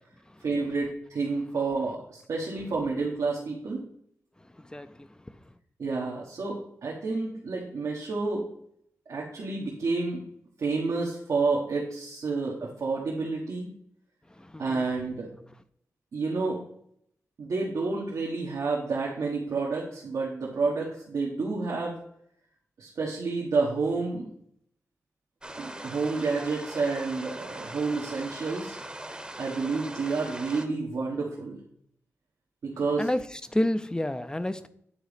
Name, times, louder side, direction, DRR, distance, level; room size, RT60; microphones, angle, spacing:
voice 1, 0.4-3.8 5.8-8.5 9.1-10.2 10.6-13.7 14.6-15.3 16.1-16.6 17.4-22.0 22.8-24.3 25.6-28.8 29.4-31.6 32.6-33.1, right 4 dB, 80° right, -4 dB, 1.5 m, -29 dB
voice 2, 4.7-5.1 14.4-14.8 33.0-34.7, left 1 dB, 15° left, 12 dB, 0.6 m, -29 dB
sound 1, 25.4-30.7, right 1 dB, 15° right, 1.0 m, -40 dB
9.2 x 4.0 x 5.1 m, 0.69 s
cardioid pair, 60°, 5 cm